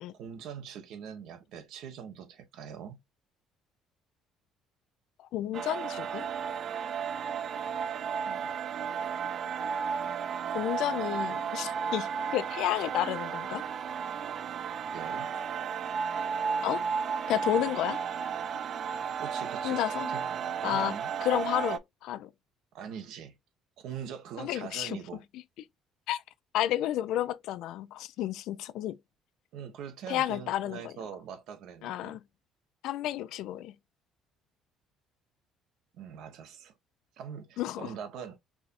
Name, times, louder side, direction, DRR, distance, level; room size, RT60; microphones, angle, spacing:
voice 1, 0.1-3.0 8.3-8.5 14.9-15.3 19.2-19.8 20.1-21.1 22.7-23.4 23.8-25.2 29.5-32.2 35.9-36.7 37.2-38.4, right 8 dB, 75° right, 0.9 m, -42 dB
voice 2, 5.3-6.3 10.5-13.6 16.6-16.8 17.3-18.0 19.6-20.1 20.6-22.3 24.4-25.0 26.1-26.2 26.5-29.0 30.1-30.9 31.8-32.2 32.8-33.7 37.6-37.9, left 13 dB, 75° left, 0.3 m, -31 dB
sound 1, 5.5-21.8, right 7 dB, 55° right, 0.4 m, -33 dB
4.7 x 2.8 x 2.4 m
supercardioid pair, 75°, 0 cm